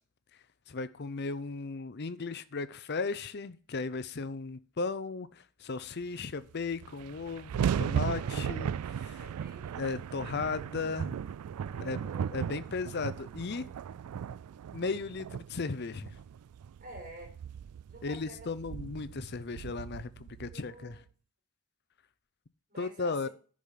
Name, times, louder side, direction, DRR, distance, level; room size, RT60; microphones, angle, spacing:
voice 1, 0.7-9.2 9.8-11.2 11.8-12.0 12.3-13.7 14.7-16.2 18.0-21.0 22.8-23.3, left 4 dB, 45° left, 0.6 m, -36 dB
sound 1, 6.4-6.5 6.6-21.0, right 8 dB, 80° right, 0.3 m, -37 dB
voice 2, 9.2-9.8 11.7-12.4 16.8-17.3 17.9-18.5 20.5-21.0 22.7-23.3, right 1 dB, 35° right, 4.2 m, -49 dB
10.5 x 5.0 x 5.7 m
head